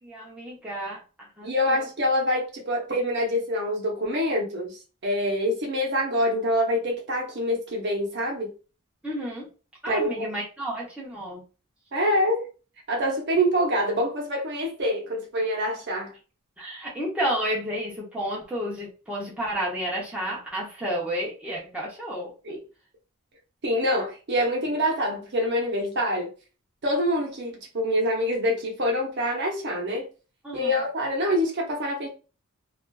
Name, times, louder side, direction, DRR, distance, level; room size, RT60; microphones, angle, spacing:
voice 1, 0.0-1.8 9.0-9.5 9.8-11.5 16.6-22.6 30.4-30.8, equal, 5° right, 0.7 m, -31 dB
voice 2, 1.4-8.5 9.9-10.3 11.9-12.5 12.9-16.1 22.4-22.6 23.6-26.3 26.8-30.1 30.5-32.1, equal, 50° right, 0.8 m, -25 dB
2.4 x 2.4 x 2.2 m
head